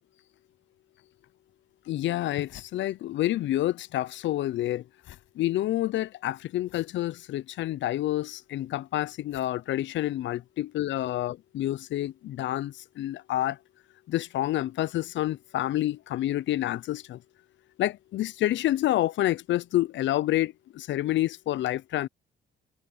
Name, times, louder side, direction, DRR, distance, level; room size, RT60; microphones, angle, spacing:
sound 1, 1.2-1.3 1.8-1.9 2.1-3.7 3.9-10.5, left 14 dB, 85° left, 7.1 m, -56 dB
voice 1, 1.9-4.9 5.4-13.6 14.1-17.2 17.8-22.1, left 14 dB, 70° left, 0.5 m, -28 dB
cardioid pair, 90°, 20 cm